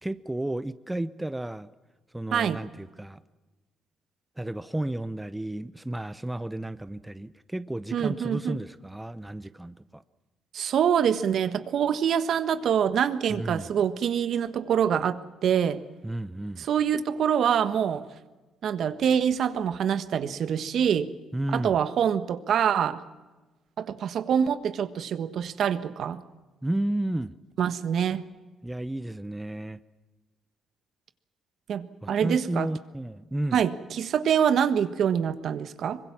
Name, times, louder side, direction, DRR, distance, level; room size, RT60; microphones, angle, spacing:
voice 1, 0.0-1.7 2.1-3.2 4.4-10.0 13.3-13.7 16.0-16.7 21.3-21.8 26.6-27.4 28.6-29.8 32.0-33.6, right 1 dB, 10° right, 14 dB, 0.8 m, -32 dB
voice 2, 7.9-8.6 10.5-15.8 16.6-18.0 18.6-21.1 21.5-23.0 23.8-26.2 27.6-28.2 31.7-32.7 33.5-36.0, right 8 dB, 65° right, 12 dB, 1.4 m, -25 dB
24.0 x 21.5 x 7.4 m, 1.2 s
cardioid pair, 90°, 0 cm